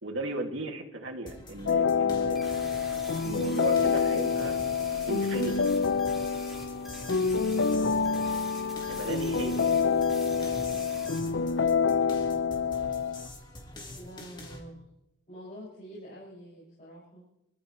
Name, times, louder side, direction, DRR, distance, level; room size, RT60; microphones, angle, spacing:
voice 1, 0.0-2.4 3.2-4.6 5.1-5.7 8.9-9.7, right 2 dB, 80° right, 2 dB, 2.4 m, -36 dB
sound 1, 1.3-14.6, left 1 dB, 25° left, 3.1 m, -46 dB
sound 2, 1.7-13.3, left 5 dB, 70° left, 0.6 m, -27 dB
sound 3, 2.3-11.2, equal, ahead, 5.1 m, -46 dB
voice 2, 7.0-7.5 10.6-11.1 13.1-13.5 13.9-14.8 15.3-17.2, equal, 40° left, -7 dB, 6.6 m, -47 dB
25.5 x 14.0 x 3.3 m, 0.87 s
head